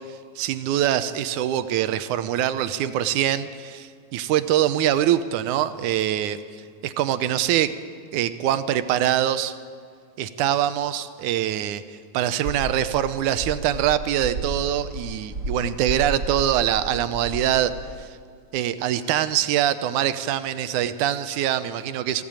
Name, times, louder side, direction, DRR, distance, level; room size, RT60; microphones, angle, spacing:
voice 1, 0.4-6.4 6.8-7.8 8.1-9.6 10.2-11.8 12.1-17.7 18.0-18.1 18.5-22.2, right 11 dB, 75° right, 12 dB, 2.0 m, -23 dB
sound 1, 12.4-17.9, right 2 dB, 25° right, 3.4 m, -33 dB
20.0 x 15.5 x 8.9 m, 2.2 s
omnidirectional pair, 3.9 m